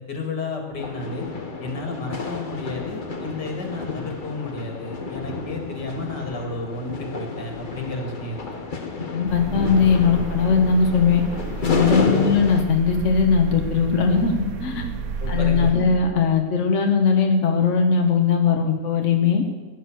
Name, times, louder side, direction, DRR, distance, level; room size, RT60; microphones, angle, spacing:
voice 1, 0.1-1.3 1.6-8.5 12.0-12.4 15.2-15.9, left 3 dB, 80° left, 2 dB, 3.0 m, -31 dB
sound 1, 0.8-12.6, left 3 dB, 30° left, 1.2 m, -30 dB
voice 2, 9.1-11.2 11.6-14.9 15.3-19.4, left 5 dB, 45° left, 3 dB, 1.5 m, -19 dB
sound 2, 9.3-15.7, right 4 dB, 55° right, 1.5 m, -31 dB
15.0 x 10.0 x 6.5 m, 1.4 s
omnidirectional pair, 1.8 m